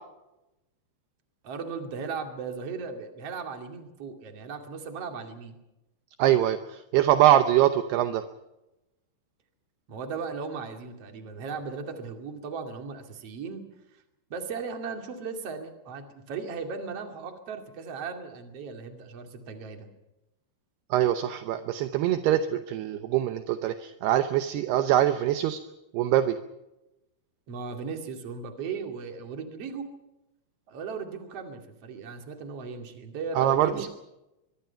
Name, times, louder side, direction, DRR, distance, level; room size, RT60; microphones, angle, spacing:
voice 1, 1.4-5.6 9.9-13.6 14.3-19.9 27.5-29.9 30.7-33.9, right 5 dB, 40° right, 5 dB, 2.9 m, -37 dB
voice 2, 6.2-8.2 20.9-25.6 25.9-26.4 33.4-33.9, right 12 dB, 75° right, 9 dB, 2.7 m, -23 dB
23.5 x 23.0 x 5.8 m, 0.95 s
omnidirectional pair, 5.1 m